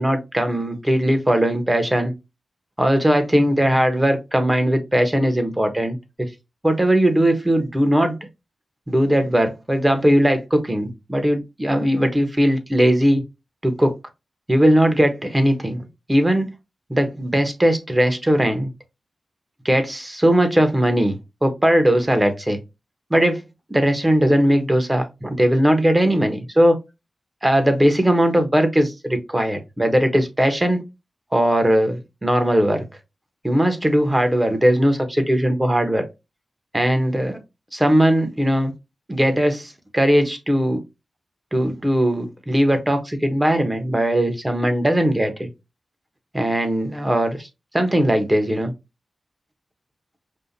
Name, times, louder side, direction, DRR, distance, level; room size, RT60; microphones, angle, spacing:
voice 1, 0.0-2.1 2.8-6.3 6.6-8.2 8.9-13.2 13.6-13.9 14.5-16.5 16.9-18.7 19.6-22.6 23.1-23.4 23.7-26.8 27.4-30.8 31.3-32.8 33.4-36.0 36.7-37.4 37.7-38.7 39.1-40.8 41.5-45.5 46.3-47.5 47.7-48.7, equal, 15° right, 1.2 m, -19 dB
5.5 x 2.5 x 2.7 m
cardioid pair, 65°, 0 cm